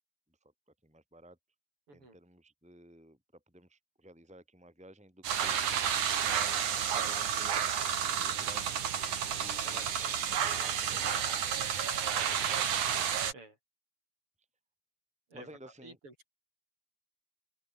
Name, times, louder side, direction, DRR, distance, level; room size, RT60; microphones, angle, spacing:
voice 1, 0.8-1.4 1.9-3.2 3.5-8.7 9.3-9.9 10.3-11.0 15.3-16.0, right 1 dB, ahead, 4.6 m, -54 dB
sound 1, 5.2-13.3, right 8 dB, 60° right, 3.7 m, -31 dB
voice 2, 9.6-10.2 10.5-11.4 12.3-12.6 13.3-13.6 15.3-15.5 15.8-16.1, right 2 dB, 40° right, 8.1 m, -52 dB
open air
omnidirectional pair, 4.0 m